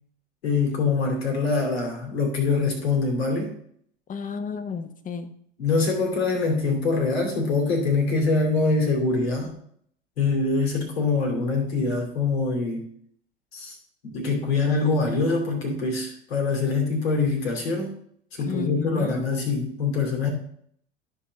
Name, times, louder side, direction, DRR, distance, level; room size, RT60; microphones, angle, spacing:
voice 1, 0.4-3.5 5.6-9.5 10.2-12.9 13.5-13.7 14.0-18.0 18.3-20.3, left 4 dB, 75° left, 0 dB, 2.6 m, -24 dB
voice 2, 4.1-5.3 18.4-19.3, left 6 dB, 25° left, 10 dB, 0.9 m, -32 dB
12.5 x 5.5 x 3.2 m, 0.66 s
figure-of-eight pair, 75°, 31 cm